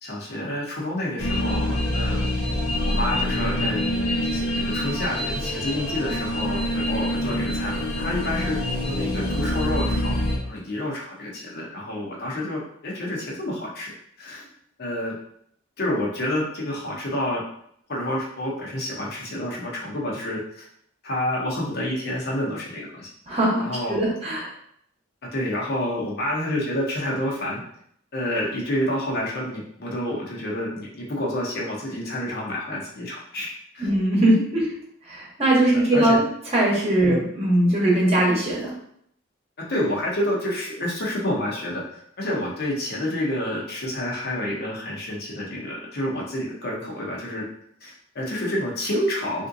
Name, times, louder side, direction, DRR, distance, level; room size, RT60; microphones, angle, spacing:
voice 1, 0.0-2.3 2.8-3.8 4.3-8.6 8.8-13.9 14.2-14.5 14.8-15.1 15.8-17.4 17.9-20.7 21.0-23.1 23.6-24.0 25.3-27.6 28.1-33.9 35.9-36.2 37.0-37.2 39.6-47.4 47.8-49.5, left 1 dB, 50° left, -3 dB, 0.7 m, -29 dB
sound 1, 1.2-10.4, left 1 dB, 80° left, 0.9 m, -25 dB
voice 2, 23.3-24.5 33.8-34.7 35.0-36.3 36.5-38.7, right 1 dB, 30° right, -4 dB, 0.9 m, -20 dB
3.6 x 2.5 x 2.6 m, 0.69 s
head